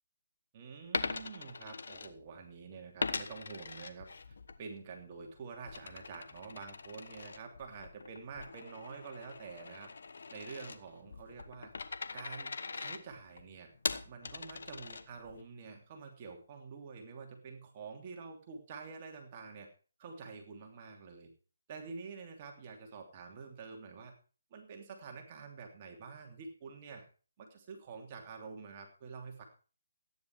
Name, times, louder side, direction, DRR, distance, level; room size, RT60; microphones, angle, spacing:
voice 1, 0.5-9.9 10.3-13.7 14.0-19.7 20.0-21.3 21.7-24.1 24.5-27.0 27.4-29.4, right 5 dB, 35° right, 2 dB, 3.0 m, -48 dB
Coin (dropping), 0.8-2.5 3.0-4.6 5.0-15.4, left 4 dB, 65° left, 1.2 m, -41 dB
14.5 x 10.0 x 4.8 m, 0.38 s
figure-of-eight pair, 150°, 0 cm